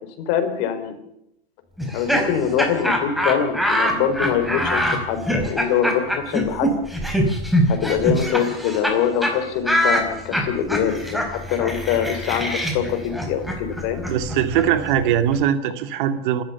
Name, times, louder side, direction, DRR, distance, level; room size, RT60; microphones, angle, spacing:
voice 1, 0.2-0.9 1.9-6.7 7.7-14.0, left 8 dB, 50° left, 8 dB, 4.6 m, -24 dB
Laughter, 1.8-8.9 9.2-9.3 9.6-15.4, equal, ahead, 4.4 m, -23 dB
voice 2, 14.1-16.4, right 10 dB, 55° right, 10 dB, 2.3 m, -21 dB
27.5 x 13.5 x 7.1 m, 0.77 s
hypercardioid pair, 115°, 30 cm